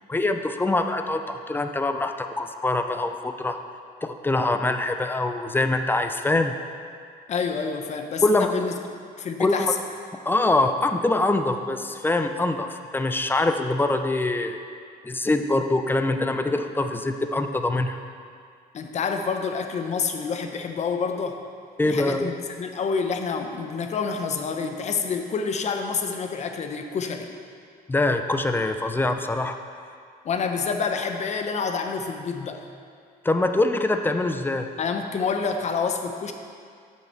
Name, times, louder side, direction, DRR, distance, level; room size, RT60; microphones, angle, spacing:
voice 1, 0.1-3.6 4.0-6.5 8.2-8.5 9.4-9.7 10.3-14.6 15.0-18.0 21.8-22.3 27.9-29.6 33.2-34.7, left 2 dB, 10° left, 7 dB, 0.5 m, -24 dB
voice 2, 7.3-8.7 9.2-9.8 18.7-21.4 21.8-27.3 30.2-32.6 34.8-36.3, left 5 dB, 45° left, 6 dB, 0.8 m, -28 dB
7.6 x 5.7 x 5.8 m, 2.2 s
cardioid pair, 110°, 17 cm